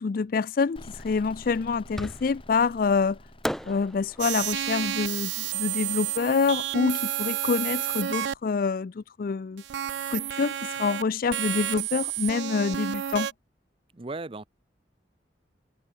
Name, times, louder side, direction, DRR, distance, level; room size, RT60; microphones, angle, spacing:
voice 1, 0.0-3.2 3.7-9.6 10.1-13.3, left 5 dB, 55° left, 0.4 m, -26 dB
sound 1, 0.8-8.3, left 1 dB, 30° left, 5.6 m, -50 dB
Fireworks, 2.0-2.6 3.4-6.6, equal, ahead, 1.4 m, -38 dB
sound 2, 4.2-8.3 9.6-11.0 11.3-13.3, right 12 dB, 75° right, 0.3 m, -30 dB
voice 2, 13.9-14.5, right 3 dB, 30° right, 0.7 m, -36 dB
head